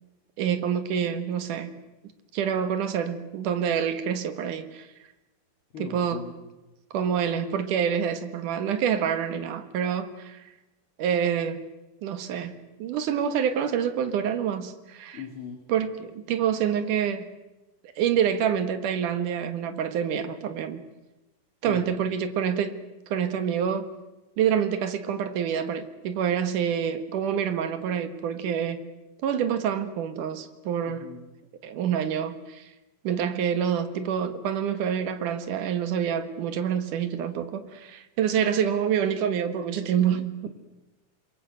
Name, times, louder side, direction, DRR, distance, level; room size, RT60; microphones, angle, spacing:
voice 1, 0.4-1.7 2.3-4.9 5.8-6.3 6.9-10.4 11.0-11.6 12.0-15.2 15.7-17.3 18.0-20.8 21.6-22.8 23.1-23.9 24.4-28.8 29.2-31.0 31.6-32.7 33.0-40.4, right 8 dB, 65° right, 2.8 m, -27 dB
voice 2, 5.7-6.4 15.1-15.6 21.6-21.9 30.9-31.3, left 6 dB, 40° left, 2.7 m, -39 dB
27.5 x 23.0 x 7.9 m
omnidirectional pair, 4.3 m